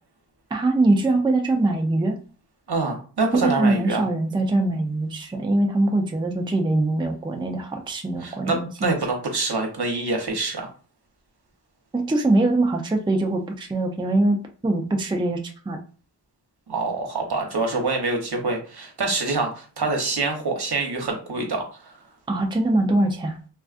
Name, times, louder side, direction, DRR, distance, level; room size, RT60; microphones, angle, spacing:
voice 1, 0.5-2.2 3.4-8.9 11.9-15.4 15.7-15.8 22.3-23.4, right 2 dB, 10° right, 3 dB, 0.4 m, -22 dB
voice 2, 2.7-4.0 8.2-10.7 16.7-22.0, right 3 dB, 70° right, 2 dB, 1.0 m, -26 dB
3.5 x 2.4 x 2.4 m, 0.38 s
wide cardioid pair, 70°, 41 cm